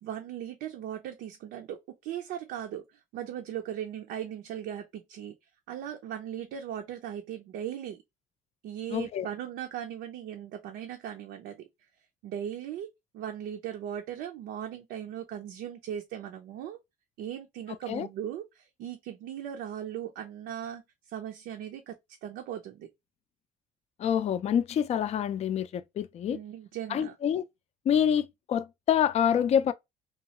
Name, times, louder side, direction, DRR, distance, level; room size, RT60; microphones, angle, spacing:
voice 1, 0.0-5.3 5.7-8.0 8.6-11.7 12.2-12.9 13.1-16.8 17.2-20.8 21.1-22.0 22.2-22.9 26.3-27.2, right 10 dB, 80° right, 0.5 m, -38 dB
voice 2, 8.9-9.3 17.9-18.1 24.0-26.4 26.9-27.4 27.9-29.7, left 9 dB, 40° left, 0.3 m, -27 dB
3.0 x 2.3 x 2.8 m
cardioid pair, 110°, 17 cm